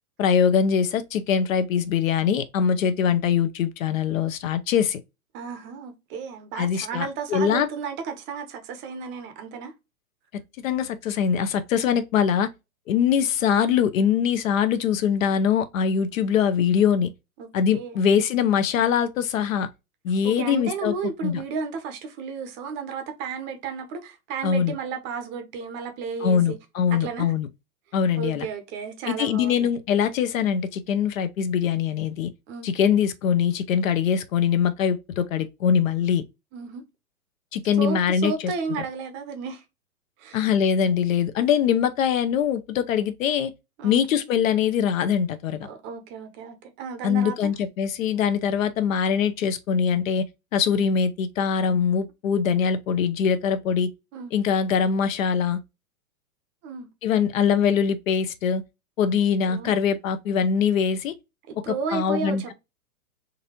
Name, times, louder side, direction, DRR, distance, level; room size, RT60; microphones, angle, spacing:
voice 1, 0.2-5.0 6.5-7.7 10.6-12.5 12.9-17.1 17.5-19.7 20.0-20.9 21.2-21.4 24.4-24.7 26.2-27.5 27.9-28.5 29.1-32.3 32.6-36.2 37.5-38.3 40.3-43.5 43.8-45.7 47.0-50.3 50.5-53.9 54.3-55.6 57.0-58.6 59.0-61.1 61.7-62.4, left 7 dB, 65° left, 0.7 m, -23 dB
voice 2, 5.3-9.7 17.4-17.5 17.7-18.0 20.2-26.6 27.0-27.3 28.1-29.7 32.5-32.7 36.5-36.8 37.8-39.6 40.2-40.4 43.8-44.0 45.6-47.5 54.1-54.3 56.6-56.9 59.4-59.8 61.5-62.5, right 5 dB, 25° right, 0.7 m, -33 dB
3.9 x 2.7 x 2.8 m
hypercardioid pair, 130°, 45 cm